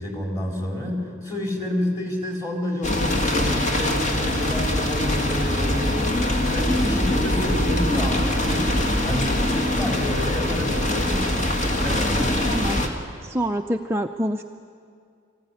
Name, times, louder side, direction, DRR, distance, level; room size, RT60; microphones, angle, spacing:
voice 1, 0.0-6.0 6.5-8.7 9.0-9.5 9.8-11.3 11.8-12.4, left 1 dB, 20° left, 0 dB, 3.9 m, -29 dB
sound 1, 2.8-12.9, left 1 dB, 40° left, 2.0 m, -23 dB
voice 2, 12.5-12.8 13.2-14.4, equal, 15° right, 4 dB, 0.5 m, -26 dB
24.0 x 15.5 x 9.9 m, 2.3 s
head